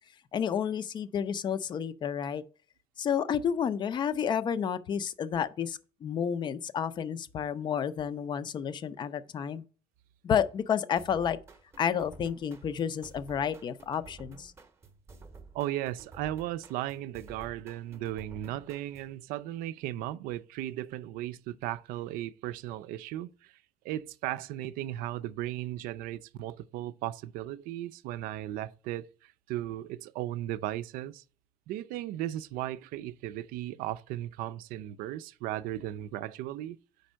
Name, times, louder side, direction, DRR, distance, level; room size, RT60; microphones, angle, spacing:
voice 1, 0.3-2.4 3.0-9.6 10.2-11.4 11.8-14.5, left 8 dB, 30° left, 0.4 m, -30 dB
sound 1, 11.0-19.2, right 3 dB, 15° right, 0.7 m, -52 dB
voice 2, 15.5-23.5 23.8-31.2 31.7-36.8, right 13 dB, 90° right, 0.5 m, -36 dB
5.2 x 4.4 x 6.2 m
cardioid pair, 160°, 14 cm